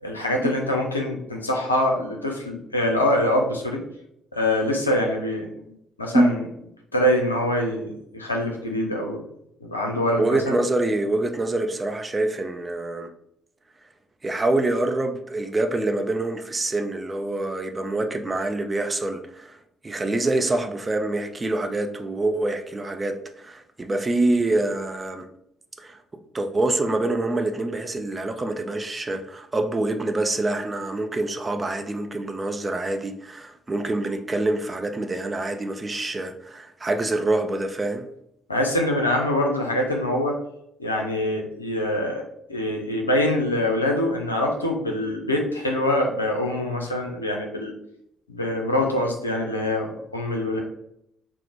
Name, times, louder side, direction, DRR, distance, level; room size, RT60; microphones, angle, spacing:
voice 1, 0.0-3.9 4.3-5.7 6.0-6.4 6.9-9.2 9.6-10.5 38.5-40.4 40.8-42.2 42.5-47.7 48.3-50.6, left 1 dB, 85° left, 0.5 m, -24 dB
voice 2, 10.2-13.1 14.2-19.6 19.8-25.3 25.8-26.0 26.3-38.1, right 2 dB, 25° right, 0.5 m, -25 dB
4.4 x 2.0 x 3.7 m
figure-of-eight pair, 45°, 0 cm